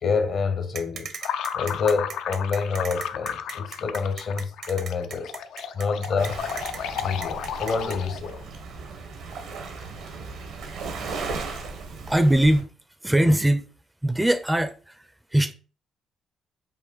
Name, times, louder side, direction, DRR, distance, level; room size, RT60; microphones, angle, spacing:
voice 1, 0.0-1.1 1.5-5.4 5.7-6.4 7.0-8.4, left 5 dB, 55° left, 0.7 m, -27 dB
sound 1, 0.7-8.0, right 6 dB, 60° right, 0.6 m, -37 dB
sound 2, 1.2-8.4, left 8 dB, 80° left, 0.3 m, -33 dB
Waves surf, 6.2-12.6, right 4 dB, 85° right, 1.1 m, -36 dB
voice 2, 12.1-12.7 13.0-13.7 14.0-15.5, right 1 dB, 10° right, 0.4 m, -21 dB
5.3 x 2.3 x 3.9 m
cardioid pair, 90°, 0 cm